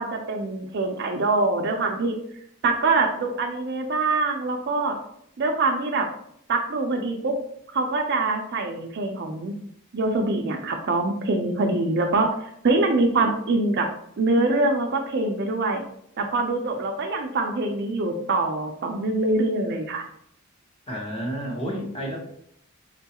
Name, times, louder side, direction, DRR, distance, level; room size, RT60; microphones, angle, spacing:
voice 1, 0.0-2.1 2.6-5.0 5.4-6.1 6.5-7.4 7.7-9.5 9.9-12.3 12.6-13.9 14.2-15.8 16.2-20.0, right 2 dB, 50° right, 3 dB, 0.4 m, -24 dB
voice 2, 20.9-22.2, equal, 25° left, -2 dB, 0.9 m, -30 dB
4.9 x 2.3 x 2.8 m, 0.70 s
head